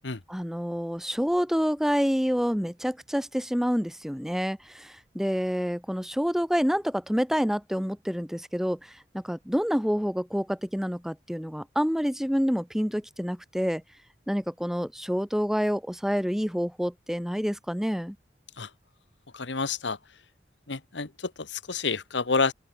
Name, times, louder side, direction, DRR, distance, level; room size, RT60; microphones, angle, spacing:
voice 1, 0.3-8.8 9.1-13.8 14.3-18.1, equal, ahead, 1.4 m, -28 dB
voice 2, 19.3-20.0 20.7-22.5, left 4 dB, 80° left, 1.4 m, -29 dB
open air
head